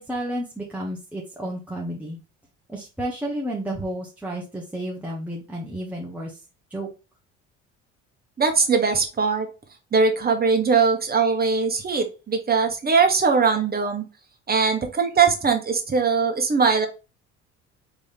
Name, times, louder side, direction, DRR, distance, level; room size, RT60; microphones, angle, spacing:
voice 1, 0.0-2.2 2.7-6.4 6.7-6.9, right 1 dB, 5° right, -3 dB, 1.2 m, -31 dB
voice 2, 8.4-9.5 9.9-14.0 14.5-16.9, right 5 dB, 25° right, 4 dB, 1.3 m, -21 dB
4.3 x 3.4 x 3.4 m, 0.30 s
hypercardioid pair, 55°, 34 cm